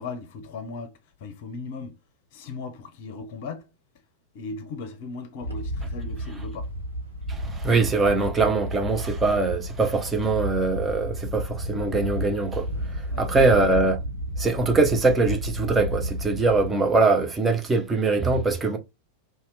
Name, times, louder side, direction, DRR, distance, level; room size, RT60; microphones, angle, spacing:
voice 1, 0.0-2.0 2.3-3.7 4.3-6.7 13.1-13.6, left 4 dB, 50° left, 0.6 m, -37 dB
Wind, 5.4-16.7, equal, 80° right, 1.0 m, -32 dB
voice 2, 7.3-12.7 13.2-14.0 14.4-18.8, right 3 dB, 15° right, 0.6 m, -22 dB
2.8 x 2.2 x 3.2 m
figure-of-eight pair, 90°, 0 cm